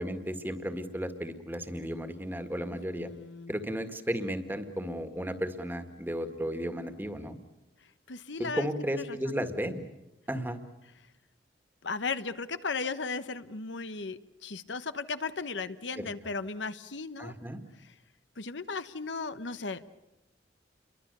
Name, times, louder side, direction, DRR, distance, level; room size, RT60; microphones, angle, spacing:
voice 1, 0.0-3.1 3.5-7.4 8.4-9.8 10.3-10.6 16.0-16.1 17.2-17.6, equal, 10° right, 8 dB, 1.9 m, -34 dB
voice 2, 2.7-3.5 8.1-8.7 9.0-9.4 11.8-17.3 17.8-17.9 18.4-19.9, left 4 dB, 85° left, 12 dB, 1.1 m, -36 dB
29.0 x 23.5 x 6.9 m, 0.96 s
head